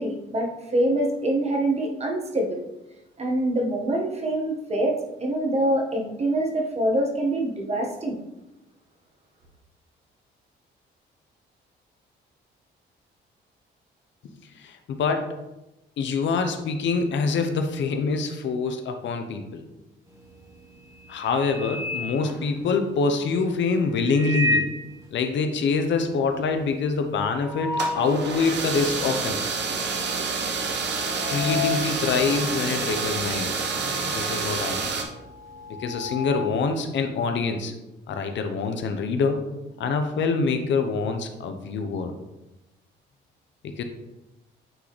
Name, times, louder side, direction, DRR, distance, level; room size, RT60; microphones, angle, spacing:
voice 1, 0.0-2.6 3.2-8.2, right 1 dB, 30° right, 0 dB, 1.4 m, -25 dB
voice 2, 14.2-15.3 16.0-19.6 21.1-24.7 25.1-29.4 31.3-34.9 35.8-37.7 38.1-39.5 39.8-42.1 43.6-43.8, left 4 dB, 70° left, 6 dB, 0.8 m, -25 dB
sound 1, 20.1-20.5 20.9-23.0 23.9-24.9 25.3-25.4 25.6-25.7 26.1-28.2 28.7-28.8 29.6-29.9 30.2-33.5 33.8-36.7, left 3 dB, 15° right, 1.5 m, -32 dB
sound 2, 27.7-35.0, right 4 dB, 60° right, 1.1 m, -28 dB
8.9 x 4.0 x 3.2 m, 0.97 s
cardioid pair, 90°, 20 cm